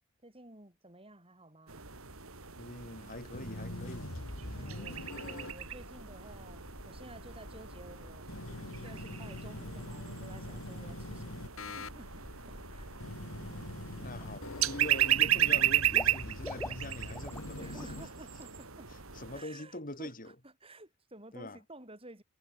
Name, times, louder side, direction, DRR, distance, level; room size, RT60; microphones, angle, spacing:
voice 1, 0.2-1.8 4.6-12.9 17.6-19.1 19.3-22.2, right 2 dB, 25° right, 7.2 m, -53 dB
sound 1, 1.7-19.4, right 11 dB, 65° right, 3.4 m, -35 dB
voice 2, 2.6-4.1 14.0-18.0 18.9-20.4 21.3-21.6, left 1 dB, 40° left, 4.1 m, -44 dB
sound 2, 3.3-18.1, left 1 dB, 65° left, 2.6 m, -44 dB
Water / Liquid, 13.5-13.6 14.0-14.7 15.0-17.5 17.8-18.0 18.4-18.5, left 1 dB, 10° left, 1.9 m, -45 dB
head